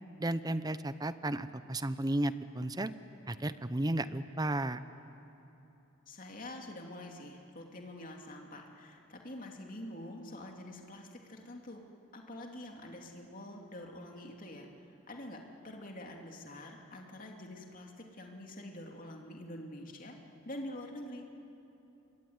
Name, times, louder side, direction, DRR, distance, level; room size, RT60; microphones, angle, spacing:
voice 1, 0.2-2.9 3.3-4.8, right 1 dB, 20° right, 13 dB, 0.7 m, -33 dB
voice 2, 6.1-11.8 12.1-20.1 20.4-21.3, left 1 dB, 40° left, 1 dB, 2.8 m, -46 dB
25.5 x 23.5 x 9.6 m, 2.9 s
head